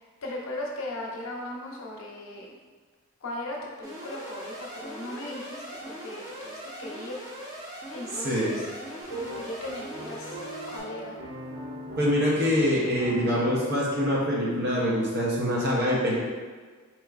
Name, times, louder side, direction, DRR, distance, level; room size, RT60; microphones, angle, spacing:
voice 1, 0.2-2.5 3.2-7.1 7.9-10.4 10.7-11.1, left 1 dB, 65° left, -2 dB, 0.7 m, -38 dB
Alarm, 3.8-10.8, right 1 dB, 15° right, 0.8 m, -41 dB
voice 2, 8.1-8.6 12.0-16.1, equal, 45° right, -5 dB, 0.7 m, -25 dB
sound 1, 9.0-14.9, right 1 dB, 80° right, 1.1 m, -40 dB
4.5 x 3.0 x 2.4 m, 1.5 s
head